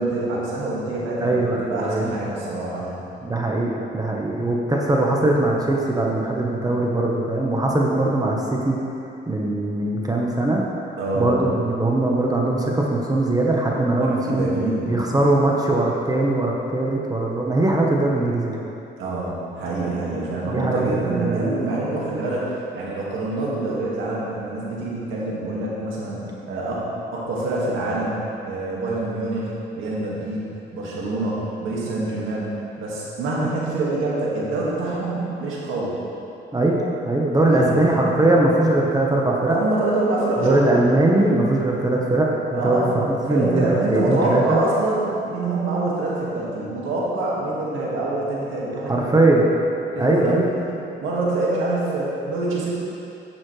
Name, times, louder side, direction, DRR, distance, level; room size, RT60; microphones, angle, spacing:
voice 1, 0.0-3.0 11.0-11.4 14.0-15.0 19.0-28.2 28.4-32.5 32.8-35.9 37.4-38.1 39.5-40.7 42.5-42.9 43.3-49.1 49.9-50.7 51.0-52.7, right 2 dB, 85° right, -5 dB, 2.1 m, -26 dB
voice 2, 1.2-2.1 3.2-8.8 9.3-10.6 11.1-18.6 20.5-21.8 36.5-36.8 37.0-39.6 40.4-44.6 48.9-49.5 49.9-50.5, right 2 dB, 20° right, -2 dB, 1.2 m, -21 dB
11.0 x 7.3 x 3.3 m, 2.8 s
cardioid pair, 90°, 20 cm